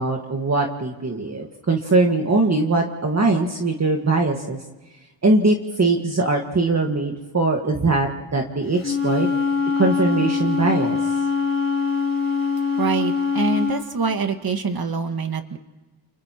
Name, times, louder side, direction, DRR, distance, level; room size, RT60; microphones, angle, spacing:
voice 1, 0.0-4.6 5.2-9.3 9.8-11.0, right 3 dB, 35° right, 1 dB, 1.8 m, -21 dB
Wind instrument woodwind instrument, 8.8-13.8, left 5 dB, 25° left, 3.2 m, -23 dB
voice 2, 12.8-15.6, right 4 dB, 50° right, 6 dB, 1.9 m, -25 dB
30.0 x 29.5 x 3.0 m, 1.2 s
wide cardioid pair, 105°, 48 cm